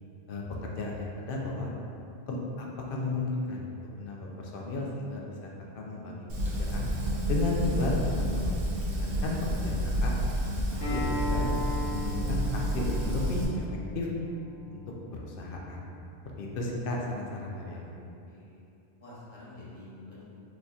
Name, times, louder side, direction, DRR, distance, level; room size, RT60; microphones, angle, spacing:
voice 1, 0.3-1.7 2.3-3.7 4.0-5.5 5.8-6.3 6.6-6.9 7.3-10.1 10.7-11.5 11.9-13.6 13.9-14.1 14.7-14.8 15.1-15.8 16.4-18.1, left 2 dB, 60° left, -2 dB, 0.6 m, -34 dB
Fire, 6.3-13.4, equal, 75° right, 0.9 m, -30 dB
Acoustic guitar, 10.8-16.0, left 1 dB, 90° left, 1.7 m, -38 dB
voice 2, 18.3-18.6 19.0-20.2, left 2 dB, 35° left, -10 dB, 0.9 m, -48 dB
4.2 x 2.7 x 2.3 m, 2.6 s
omnidirectional pair, 1.2 m